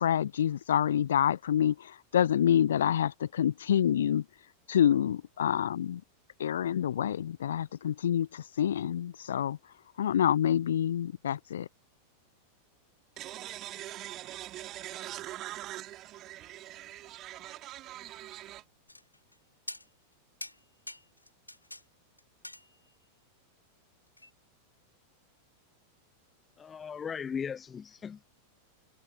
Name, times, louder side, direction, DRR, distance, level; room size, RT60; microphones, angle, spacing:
voice 1, 0.0-4.2 4.7-6.0 6.4-9.6 10.0-11.7, left 10 dB, 65° left, 0.5 m, -27 dB
voice 2, 13.2-18.6, right 15 dB, 35° right, 3.6 m, -42 dB
sound 1, 18.9-19.4 19.7-20.1 20.4-21.8 22.2-23.1 24.2-24.3, left 1 dB, 85° left, 2.4 m, -45 dB
voice 3, 26.6-28.2, left 7 dB, 20° left, 0.7 m, -37 dB
figure-of-eight pair, 90°, 0 cm